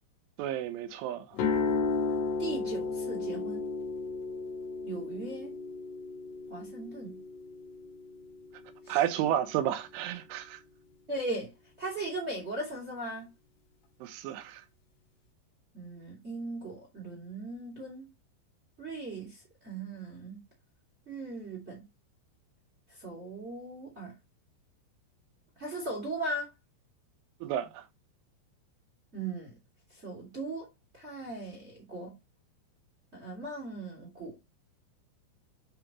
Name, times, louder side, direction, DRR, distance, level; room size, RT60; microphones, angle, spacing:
voice 1, 0.4-1.3 8.9-10.6 14.0-14.6 27.4-27.8, right 11 dB, 85° right, 3.4 m, -31 dB
sound 1, 1.3-9.4, left 4 dB, 85° left, 4.5 m, -34 dB
voice 2, 2.4-3.6 4.8-5.5 6.5-7.2 8.8-9.0 11.1-13.3 15.7-18.1 18.8-20.4 21.1-21.9 23.0-24.2 25.6-26.5 29.1-29.5 29.9-30.7 30.9-32.2 33.1-34.4, right 2 dB, 20° right, 1.7 m, -38 dB
11.5 x 3.9 x 3.0 m
omnidirectional pair, 5.5 m